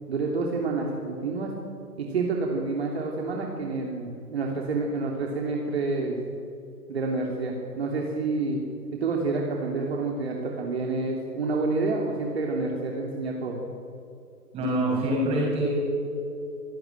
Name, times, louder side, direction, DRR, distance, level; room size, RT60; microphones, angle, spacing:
voice 1, 0.1-1.5 2.0-6.2 6.9-8.6 8.9-13.6, right 3 dB, 40° right, 0 dB, 3.1 m, -28 dB
voice 2, 14.5-15.7, right 1 dB, 10° right, -3 dB, 6.4 m, -25 dB
25.5 x 15.0 x 9.1 m, 2.7 s
figure-of-eight pair, 145°, 47 cm